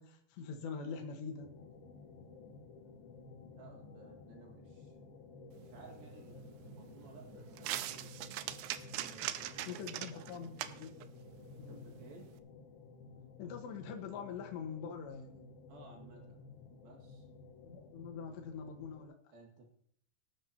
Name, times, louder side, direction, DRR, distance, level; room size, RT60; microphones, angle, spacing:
voice 1, 0.0-1.5 9.7-10.9 11.6-12.0 13.4-15.5 17.6-19.2, left 6 dB, 85° left, 3 dB, 3.7 m, -44 dB
sound 1, 1.4-19.0, left 4 dB, 65° left, 3.4 m, -54 dB
voice 2, 3.5-5.2 5.6-8.2 9.0-9.8 10.1-10.5 11.5-12.3 15.7-16.4 16.8-17.3 19.3-19.7, right 3 dB, 65° right, 1 dB, 3.6 m, -57 dB
sound 2, 5.5-12.4, right 13 dB, 80° right, 2.6 m, -44 dB
18.0 x 13.0 x 2.9 m, 0.68 s
omnidirectional pair, 4.8 m